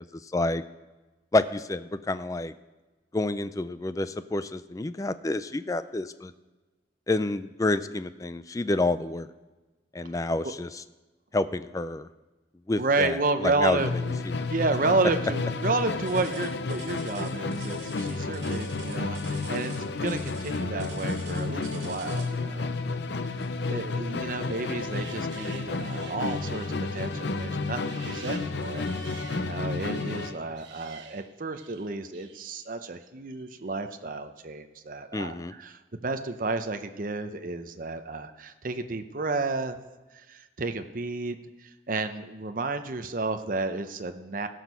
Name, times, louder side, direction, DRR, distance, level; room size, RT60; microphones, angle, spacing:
voice 1, 0.2-0.6 1.3-2.5 3.1-6.3 7.1-9.3 9.9-10.8 11.3-12.1 12.7-13.8 14.2-14.3 35.1-35.5, left 2 dB, 20° left, 13 dB, 0.4 m, -28 dB
voice 2, 12.8-14.2 14.5-22.7 23.7-39.8 40.1-44.5, right 3 dB, 50° right, 7 dB, 0.7 m, -31 dB
Musical instrument, 13.8-30.4, left 3 dB, 70° left, 0.6 m, -31 dB
sound 1, 16.1-22.4 23.4-23.7 24.2-24.3 25.0-25.1, right 4 dB, 70° right, 2.6 m, -48 dB
sound 2, 24.2-32.7 33.3-34.0, right 7 dB, 85° right, 1.1 m, -50 dB
16.5 x 6.2 x 5.5 m, 1.2 s
head